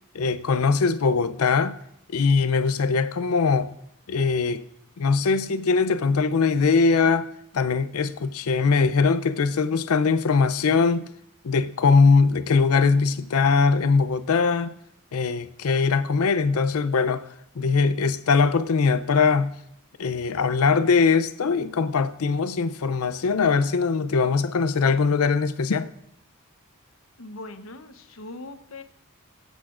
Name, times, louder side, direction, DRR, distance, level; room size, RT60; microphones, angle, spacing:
voice 1, 0.1-1.7 2.1-3.7 4.1-4.6 5.0-7.3 7.5-11.1 11.4-14.7 15.1-17.2 17.6-19.5 20.0-25.9, left 4 dB, 85° left, 0.5 m, -21 dB
voice 2, 27.2-28.8, left 2 dB, 70° left, 0.9 m, -40 dB
24.0 x 8.2 x 2.5 m
head